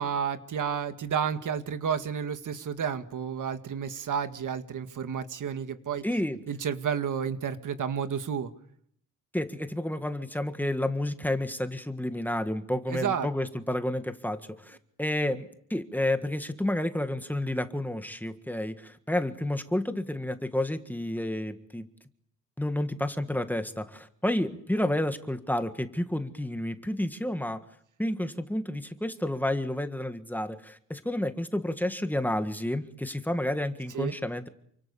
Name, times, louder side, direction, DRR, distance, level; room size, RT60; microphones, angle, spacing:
voice 1, 0.0-6.0 6.5-8.5 12.9-13.3 33.9-34.1, right 7 dB, 75° right, 9 dB, 2.0 m, -31 dB
voice 2, 6.0-6.4 9.3-21.9 22.6-27.6 28.0-34.5, left 1 dB, 5° left, 8 dB, 1.7 m, -30 dB
29.0 x 25.5 x 7.1 m, 0.67 s
wide cardioid pair, 150°, 31 cm